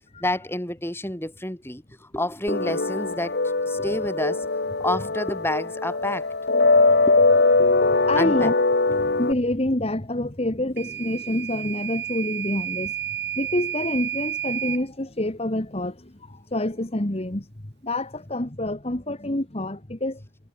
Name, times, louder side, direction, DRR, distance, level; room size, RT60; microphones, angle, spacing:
voice 1, 0.2-3.4 3.7-4.5 4.8-6.3 7.1-7.5 8.1-8.5, left 1 dB, 10° left, 4.9 m, -29 dB
sound 1, 2.5-9.3, left 3 dB, 55° left, 1.4 m, -21 dB
voice 2, 7.7-8.5 9.0-12.9 13.3-20.2, left 1 dB, 30° left, 1.6 m, -27 dB
Microwave oven / Alarm, 10.8-14.9, right 11 dB, 55° right, 2.6 m, -31 dB
head